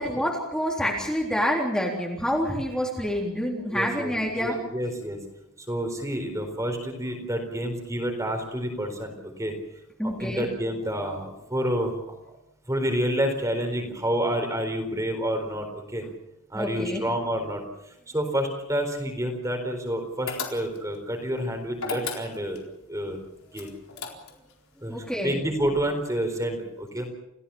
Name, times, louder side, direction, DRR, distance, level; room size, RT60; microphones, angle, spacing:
voice 1, 0.0-4.6 10.0-10.5 16.5-17.0 24.9-25.4, equal, 5° left, -2 dB, 3.7 m, -27 dB
voice 2, 3.7-5.2 5.6-9.5 10.2-12.1 12.7-16.0 16.5-17.6 18.1-22.6 22.9-23.2 23.5-23.7 24.8-27.1, equal, 15° right, 4 dB, 4.2 m, -29 dB
sound 1, 20.3-21.0 21.8-22.7 23.5-24.5, left 5 dB, 75° left, 4.2 m, -34 dB
29.0 x 17.0 x 7.2 m, 0.86 s
head